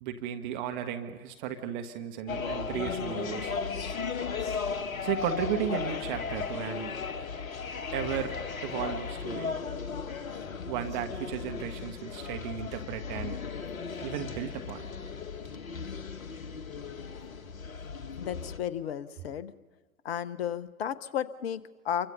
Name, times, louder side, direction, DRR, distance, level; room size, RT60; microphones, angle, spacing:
voice 1, 0.0-3.5 5.0-7.0 7.9-8.3 8.6-9.5 10.7-13.4 14.0-14.9, right 9 dB, 30° right, 6 dB, 1.6 m, -34 dB
sound 1, 2.3-18.6, left 5 dB, 60° left, 1.7 m, -36 dB
voice 2, 18.2-19.5 20.0-22.1, left 9 dB, 40° left, 16 dB, 1.0 m, -33 dB
28.5 x 24.5 x 5.6 m, 1.3 s
figure-of-eight pair, 115°, 46 cm